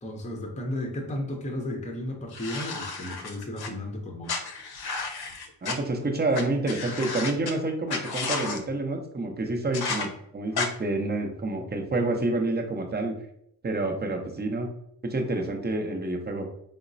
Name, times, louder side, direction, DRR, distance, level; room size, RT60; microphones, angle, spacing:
voice 1, 0.0-4.4, left 1 dB, 15° left, 1 dB, 0.7 m, -34 dB
sound 1, 2.3-3.7 4.3-5.8 6.3-6.4 6.7-7.5 7.9-8.6 9.7-10.1 10.6-10.7, left 4 dB, 55° left, 0.7 m, -32 dB
voice 2, 5.6-13.1 13.6-14.7 15.0-16.5, right 2 dB, 20° right, 3 dB, 0.7 m, -28 dB
3.7 x 2.0 x 2.6 m, 0.73 s
supercardioid pair, 50°, 46 cm